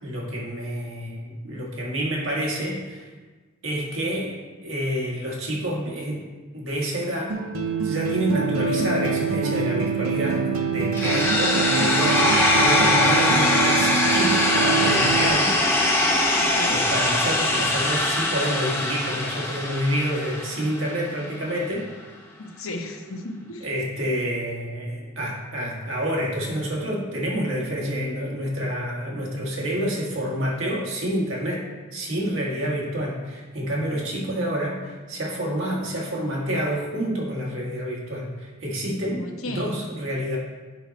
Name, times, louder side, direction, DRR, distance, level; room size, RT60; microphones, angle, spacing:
voice 1, 0.0-3.1 3.6-6.2 6.5-7.4 7.8-10.4 10.7-12.3 12.5-15.6 16.7-21.9 23.6-31.7 31.9-40.4, equal, 70° right, -3 dB, 1.8 m, -28 dB
sound 1, 7.3-15.3, right 5 dB, 90° right, 0.8 m, -25 dB
sound 2, 8.6-10.5, left 4 dB, 65° left, 1.5 m, -35 dB
sound 3, 11.0-20.9, left 1 dB, 10° left, 0.9 m, -22 dB
voice 2, 16.4-16.8 22.4-23.6 39.2-39.8, left 1 dB, 85° left, 1 dB, 1.0 m, -34 dB
7.9 x 5.3 x 4.1 m, 1.3 s
head